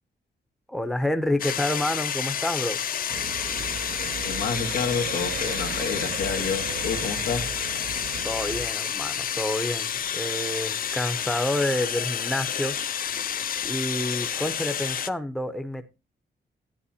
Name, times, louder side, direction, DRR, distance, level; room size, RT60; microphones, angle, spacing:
voice 1, 0.7-2.8 8.2-12.7 13.6-15.9, left 1 dB, ahead, 9 dB, 0.8 m, -28 dB
sound 1, 1.4-15.1, left 8 dB, 55° left, 0.5 m, -30 dB
sound 2, 3.1-8.7, right 7 dB, 70° right, 0.6 m, -36 dB
voice 2, 4.2-7.5, left 6 dB, 90° left, 3 dB, 1.9 m, -29 dB
12.5 x 9.1 x 2.8 m, 0.28 s
cardioid pair, 115°, 18 cm